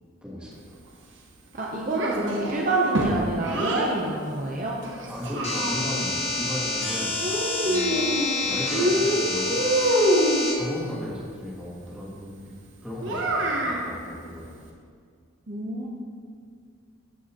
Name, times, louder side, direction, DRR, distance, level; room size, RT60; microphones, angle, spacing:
voice 1, 0.2-0.8 5.1-7.1 7.6-8.1 8.4-9.6 10.6-12.5 12.8-14.6, left 1 dB, 5° right, -7 dB, 1.9 m, -36 dB
voice 2, 1.5-4.8 15.5-15.9, right 2 dB, 40° right, -2 dB, 0.7 m, -27 dB
Child speech kid speaking, 1.9-3.9 4.8-6.1 7.2-8.4 8.7-10.5 13.0-13.9, equal, 65° right, 1.1 m, -25 dB
sound 1, 5.4-10.5, left 2 dB, 30° left, 1.4 m, -28 dB
14.0 x 5.4 x 2.9 m, 2.1 s
head